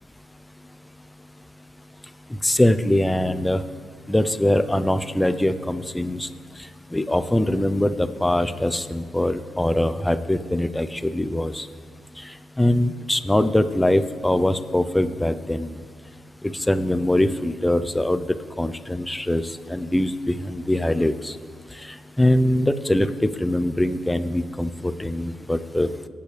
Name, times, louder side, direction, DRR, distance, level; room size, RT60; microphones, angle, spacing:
voice 1, 2.4-3.6 4.1-6.3 6.9-11.7 12.6-15.8 16.5-18.3 18.6-19.4 19.7-21.3 22.2-25.9, left 1 dB, 10° left, 11 dB, 0.7 m, -22 dB
24.0 x 9.2 x 3.4 m, 2.2 s
cardioid pair, 90°, 0 cm